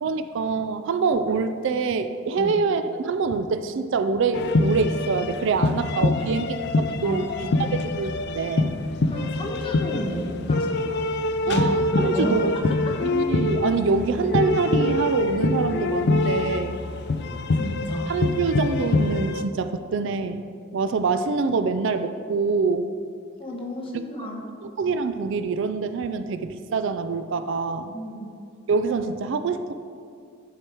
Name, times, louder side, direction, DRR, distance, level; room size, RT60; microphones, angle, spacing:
voice 1, 0.0-7.3 7.7-8.8 11.5-12.5 13.0-16.8 18.1-20.5 20.7-22.9 24.2-24.3 24.6-28.0 28.7-29.7, right 4 dB, 60° right, 10 dB, 0.4 m, -25 dB
sound 1, 4.3-19.4, left 2 dB, 55° left, 0.4 m, -25 dB
voice 2, 7.0-7.8 9.1-11.0 11.5-12.5 17.6-18.1 23.4-24.4 27.9-28.3, left 1 dB, 25° left, -1 dB, 1.1 m, -32 dB
10.5 x 4.9 x 4.5 m, 2.3 s
head